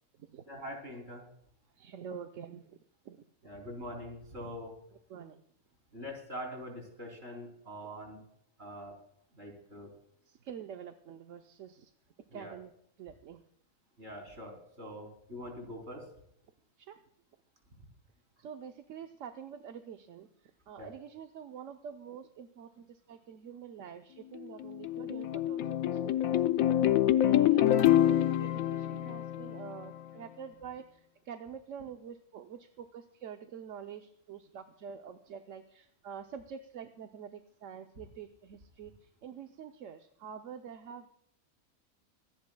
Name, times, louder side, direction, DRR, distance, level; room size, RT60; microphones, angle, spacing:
voice 1, 0.5-1.2 3.4-4.7 5.9-8.2 8.6-8.9 9.3-9.9 12.3-12.5 14.0-16.0 20.8-20.9, equal, 45° right, 2 dB, 3.6 m, -43 dB
voice 2, 1.8-2.7 3.0-3.2 5.1-5.4 10.3-11.9 12.3-12.7 13.0-13.4 16.9-17.0 18.4-20.3 20.7-38.9 39.2-41.1, right 7 dB, 65° right, 6 dB, 1.1 m, -46 dB
sound 1, 24.4-30.0, left 12 dB, 75° left, 1.1 m, -26 dB
25.0 x 10.5 x 2.2 m, 0.71 s
omnidirectional pair, 1.5 m